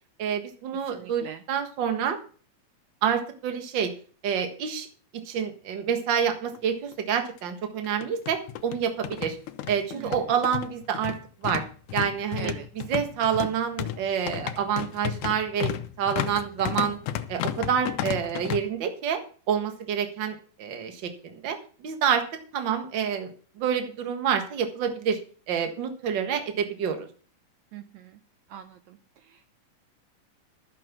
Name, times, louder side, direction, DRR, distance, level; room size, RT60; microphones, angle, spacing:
voice 1, 0.2-2.2 3.0-3.9 4.2-4.9 5.1-9.4 9.7-11.2 11.4-11.6 11.9-15.7 16.0-17.0 17.3-19.2 19.5-22.2 22.5-25.2 25.5-27.1, right 7 dB, 45° right, 6 dB, 1.8 m, -28 dB
voice 2, 0.8-1.4 9.9-10.2 12.4-12.7 27.7-28.2 28.5-29.0 29.3-29.4, right 10 dB, 70° right, 9 dB, 1.9 m, -42 dB
sound 1, 6.5-6.6 6.9-7.0 7.8-18.6, left 12 dB, 80° left, 2.2 m, -33 dB
12.5 x 7.5 x 6.1 m, 0.42 s
omnidirectional pair, 3.6 m